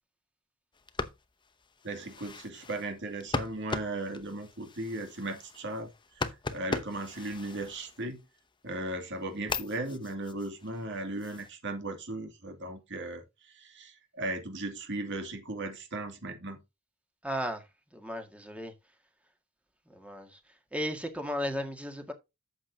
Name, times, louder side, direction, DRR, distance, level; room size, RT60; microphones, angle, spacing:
sound 1, 0.7-8.4 8.9-11.5, left 3 dB, 25° left, 0.8 m, -39 dB
voice 1, 1.8-5.9 6.2-8.2 8.6-16.6, right 2 dB, 60° right, 2.4 m, -37 dB
voice 2, 17.2-18.7 19.9-20.4 20.7-22.1, equal, 5° right, 1.8 m, -35 dB
11.0 x 7.7 x 2.7 m
head